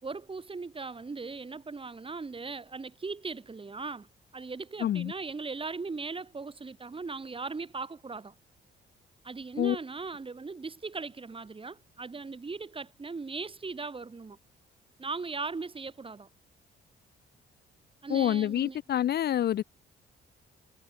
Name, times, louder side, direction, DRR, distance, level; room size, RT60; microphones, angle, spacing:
voice 1, 0.0-4.1 4.3-8.3 9.2-14.4 15.0-16.3 18.0-18.8, right 4 dB, 25° right, 3.2 m, -38 dB
voice 2, 4.8-5.1 9.6-9.8 18.1-19.6, left 11 dB, 55° left, 0.5 m, -27 dB
cardioid pair, 90°, 20 cm